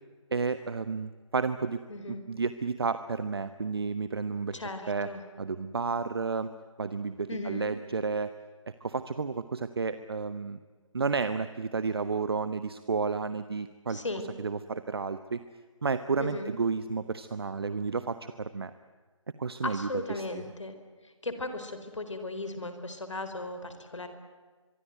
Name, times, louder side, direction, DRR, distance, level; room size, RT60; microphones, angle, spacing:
voice 1, 0.3-1.8 2.1-4.6 4.9-5.1 5.4-6.5 6.8-8.3 8.8-10.6 10.9-14.0 14.4-15.4 15.8-18.7 19.4-20.4, right 4 dB, 50° right, 12 dB, 1.1 m, -31 dB
voice 2, 1.9-2.2 4.5-5.2 7.3-7.7 13.9-14.3 16.2-16.5 19.6-20.8 21.0-24.1, left 2 dB, 65° left, 8 dB, 4.3 m, -36 dB
24.0 x 23.5 x 9.3 m, 1.4 s
figure-of-eight pair, 160°, 17 cm